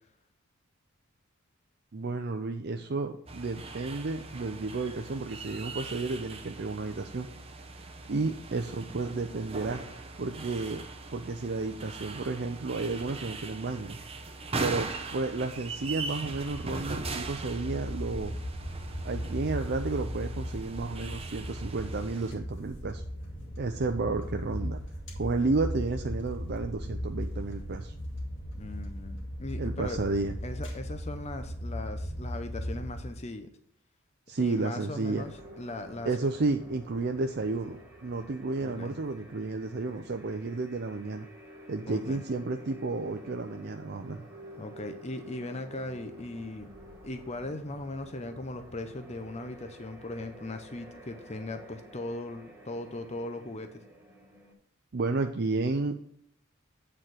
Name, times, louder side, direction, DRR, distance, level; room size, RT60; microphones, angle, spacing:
voice 1, 1.9-7.3 8.1-9.8 10.2-14.0 14.2-18.3 19.0-23.0 23.6-24.8 25.2-27.9 29.6-30.3 34.3-35.2 36.1-41.3 41.7-44.3 54.9-56.0, right 3 dB, 50° right, 5 dB, 0.5 m, -32 dB
sound 1, 3.3-22.3, right 3 dB, 30° right, 0.8 m, -40 dB
sound 2, 16.2-33.1, equal, 60° left, 2.2 m, -37 dB
voice 2, 28.6-30.0 30.4-33.5 34.4-36.1 38.6-39.0 41.9-42.2 44.6-46.7 47.0-53.8, left 2 dB, 30° left, 7 dB, 0.7 m, -39 dB
sound 3, 35.1-54.5, equal, 10° right, 2.1 m, -50 dB
8.7 x 4.4 x 6.3 m, 0.66 s
head